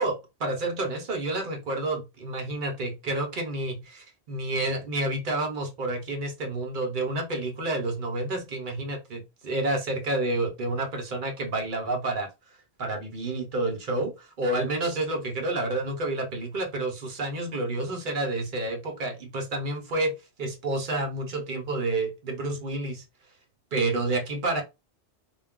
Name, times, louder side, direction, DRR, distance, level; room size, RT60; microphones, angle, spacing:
voice 1, 0.0-12.3 12.8-23.0 23.7-24.6, right 2 dB, 55° right, 0.7 m, -29 dB
2.2 x 2.2 x 3.5 m
omnidirectional pair, 1.2 m